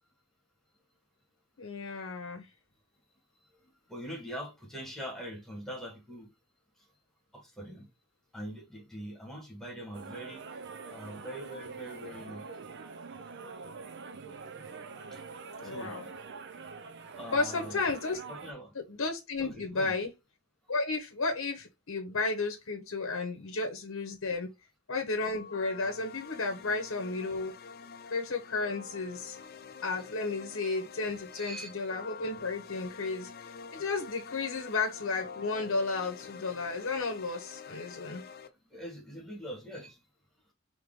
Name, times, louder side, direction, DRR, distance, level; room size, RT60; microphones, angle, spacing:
voice 1, 1.6-2.5 15.6-16.0 17.3-18.2 18.7-20.1 20.7-24.5 24.9-27.5 28.1-29.4 29.8-38.2, left 3 dB, 70° left, 1.0 m, -33 dB
voice 2, 3.9-6.3 7.3-7.9 8.3-10.5 10.9-12.4 15.1-15.2 15.6-15.9 17.2-17.8 18.3-18.7 19.4-19.9 31.3-31.7 38.7-40.0, equal, ahead, 1.6 m, -42 dB
sound 1, 9.9-18.5, right 4 dB, 55° right, 0.6 m, -45 dB
sound 2, 25.3-38.5, left 6 dB, 45° left, 0.5 m, -47 dB
4.8 x 3.0 x 3.7 m
head